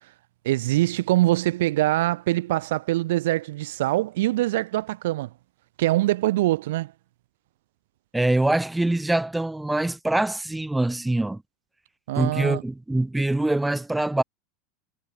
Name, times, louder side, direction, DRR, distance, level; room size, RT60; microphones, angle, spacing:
voice 1, 0.4-5.3 5.8-6.9 12.1-12.6, right 16 dB, 75° right, 5.9 m, -23 dB
voice 2, 8.1-11.4 12.2-14.2, right 2 dB, 5° right, 7.7 m, -24 dB
supercardioid pair, 165°, 0 cm